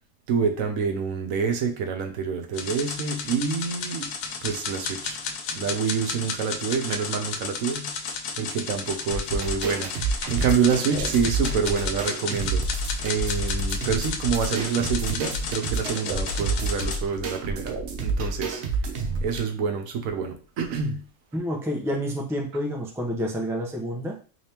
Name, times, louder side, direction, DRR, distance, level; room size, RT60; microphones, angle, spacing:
voice 1, 0.3-4.1 4.4-5.2 5.5-7.9 8.4-12.6 13.0-18.6 19.2-21.0, right 6 dB, 90° right, 5 dB, 1.1 m, -27 dB
sound 1, 2.5-17.0, left 5 dB, 90° left, 1.0 m, -33 dB
sound 2, 9.1-19.4, right 2 dB, 60° right, 0.9 m, -29 dB
voice 2, 21.3-24.2, equal, 5° right, 0 dB, 0.4 m, -29 dB
3.4 x 3.3 x 2.9 m, 0.38 s
omnidirectional pair, 1.4 m